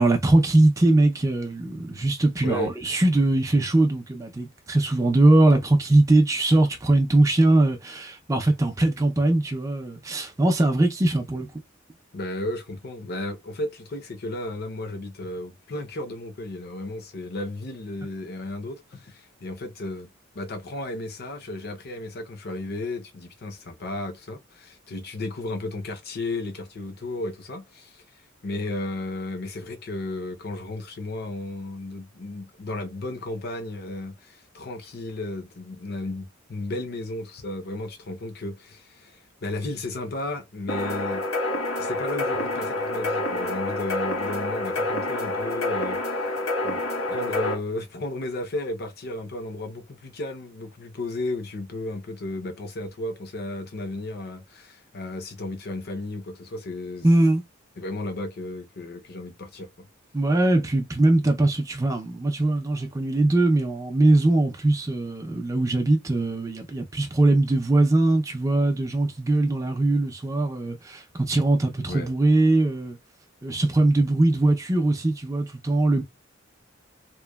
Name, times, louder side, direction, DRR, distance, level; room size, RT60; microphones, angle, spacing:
voice 1, 0.0-11.5 57.0-57.4 60.1-73.0 73.4-76.0, right 2 dB, 15° right, 0.4 m, -21 dB
voice 2, 2.4-2.7 12.1-20.1 20.3-28.0 28.4-41.2 41.8-46.3 46.6-46.8 47.1-57.1 57.8-59.9 71.9-72.1, left 2 dB, 55° left, 0.6 m, -34 dB
sound 1, 40.7-47.5, left 2 dB, 85° left, 1.3 m, -28 dB
2.9 x 2.1 x 2.2 m
head